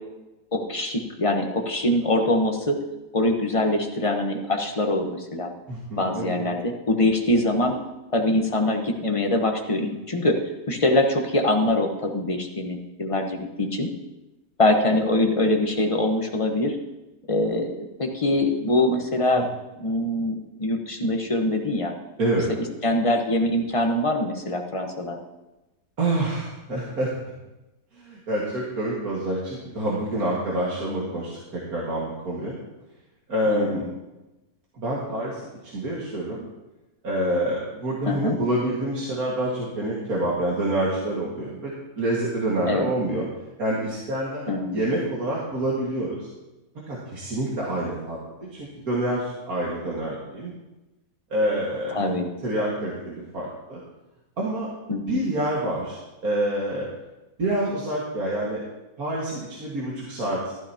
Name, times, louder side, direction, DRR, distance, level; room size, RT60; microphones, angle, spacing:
voice 1, 0.5-2.8 3.1-5.5 5.9-7.8 8.1-10.4 10.7-13.9 14.6-16.8 17.3-19.5 19.8-21.9 22.8-25.2 33.5-33.9 38.1-38.4 42.7-42.9 44.5-44.8 51.9-52.3 54.9-55.2, left 1 dB, 25° left, 3 dB, 1.0 m, -23 dB
voice 2, 5.7-6.3 19.3-19.4 22.2-22.5 26.0-27.1 27.9-32.6 33.3-33.9 34.7-36.5 37.0-43.2 43.6-46.3 46.9-50.5 51.3-52.1 52.4-53.8 54.4-54.7 55.1-56.9 57.4-58.6 59.0-60.5, right 1 dB, 60° right, -5 dB, 2.4 m, -27 dB
14.5 x 12.5 x 2.9 m, 1.0 s
omnidirectional pair, 1.8 m